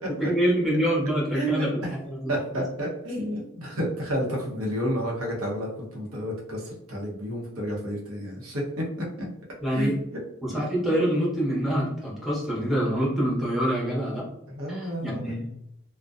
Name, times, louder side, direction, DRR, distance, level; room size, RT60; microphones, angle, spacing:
voice 1, 0.1-2.3 9.6-9.9 10.4-14.2 14.7-15.4, equal, ahead, -6 dB, 0.8 m, -26 dB
voice 2, 1.3-1.7 2.3-8.8 9.2-9.3 9.7-10.0 14.5-15.2, equal, 85° right, -3 dB, 0.8 m, -30 dB
2.5 x 2.1 x 2.3 m, 0.78 s
head